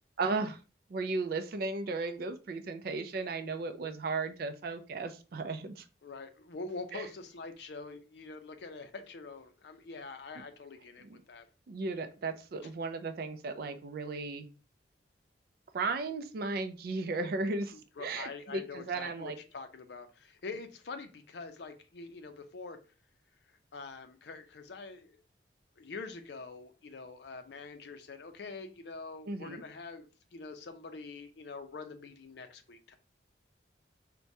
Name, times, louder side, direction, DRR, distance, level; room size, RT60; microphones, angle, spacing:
voice 1, 0.2-0.6 0.9-5.8 6.9-7.1 11.0-11.1 11.7-14.5 15.7-19.4 29.3-29.6, right 3 dB, 55° right, 8 dB, 0.4 m, -35 dB
voice 2, 6.0-11.5 17.7-22.8 23.7-25.2 25.8-32.9, left 4 dB, 65° left, 8 dB, 0.5 m, -45 dB
4.4 x 2.2 x 2.6 m, 0.34 s
head